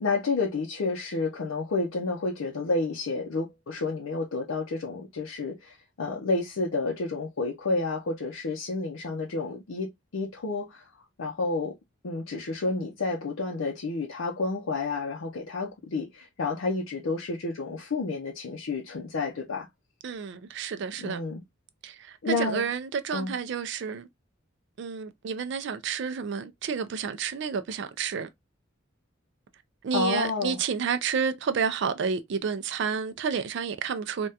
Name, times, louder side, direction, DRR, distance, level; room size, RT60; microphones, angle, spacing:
voice 1, 0.0-10.9 11.2-11.7 12.0-19.7 21.0-21.4 22.2-22.7 23.1-23.3 29.9-30.6, left 3 dB, 90° left, 0.6 m, -30 dB
voice 2, 20.0-21.2 21.8-24.1 24.8-28.3 29.8-34.3, right 6 dB, 60° right, 0.4 m, -30 dB
3.4 x 2.2 x 2.6 m
head